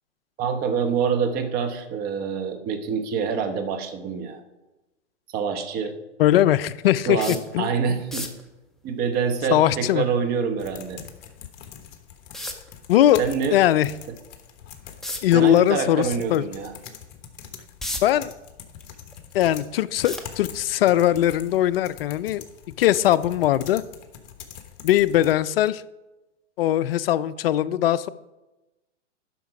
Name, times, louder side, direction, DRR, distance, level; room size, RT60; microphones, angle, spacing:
voice 1, 0.4-4.4 5.3-5.9 7.1-8.3 8.8-11.0 13.2-13.6 15.3-16.7, right 6 dB, 25° right, 6 dB, 1.0 m, -26 dB
voice 2, 6.2-7.7 9.5-10.1 12.9-13.2 13.5-13.9 15.2-16.4 18.0-18.3 19.3-22.4 22.8-23.8 24.8-25.8 26.6-28.1, left 12 dB, 55° left, 16 dB, 0.5 m, -20 dB
sound 1, 7.2-7.5 8.0-8.4 11.2-11.3 12.3-12.7 15.0-15.3 15.9-16.0 16.5-16.6 17.4-18.2 18.7-19.4 20.0-20.7 21.6-21.9 22.2-22.3, left 1 dB, ahead, 0.5 m, -33 dB
sound 2, 10.6-25.4, left 9 dB, 40° left, 1.2 m, -44 dB
11.5 x 5.9 x 4.8 m, 1.0 s
hypercardioid pair, 125°, 36 cm